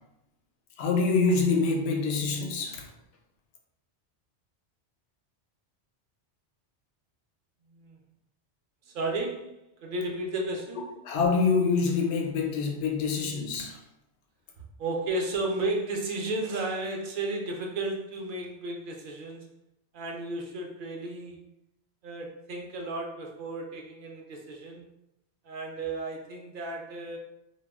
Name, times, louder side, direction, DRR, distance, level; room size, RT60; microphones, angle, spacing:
voice 1, 0.8-2.9 11.0-13.8, left 4 dB, 85° left, 0.9 m, -26 dB
voice 2, 8.9-10.9 14.8-19.5 19.9-21.4 22.0-24.8 25.4-27.2, right 2 dB, 60° right, 0.6 m, -33 dB
2.3 x 2.1 x 3.4 m
omnidirectional pair, 1.2 m